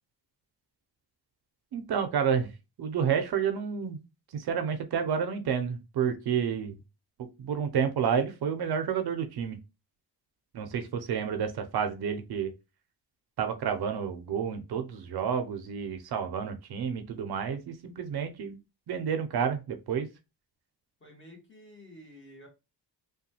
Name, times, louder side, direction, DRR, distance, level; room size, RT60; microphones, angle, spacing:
voice 1, 1.7-2.5 2.8-4.0 4.3-6.8 7.2-9.6 10.5-12.5 13.4-18.6 18.9-20.1, right 7 dB, 70° right, 0.5 m, -30 dB
voice 2, 21.0-22.5, equal, 30° left, 1.2 m, -51 dB
3.0 x 2.2 x 2.7 m
wide cardioid pair, 165°, 40 cm